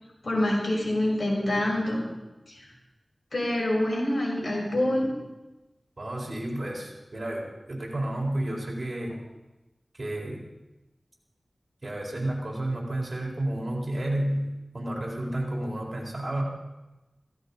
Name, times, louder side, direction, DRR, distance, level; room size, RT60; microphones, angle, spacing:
voice 1, 0.2-2.0 2.5-2.6 3.3-5.1, left 1 dB, 70° left, -3 dB, 6.1 m, -26 dB
voice 2, 6.0-9.2 9.9-10.4 11.8-14.5 14.7-16.4, right 1 dB, 50° right, -2 dB, 4.4 m, -31 dB
16.5 x 15.5 x 4.2 m, 1.0 s
wide cardioid pair, 55°, 0 cm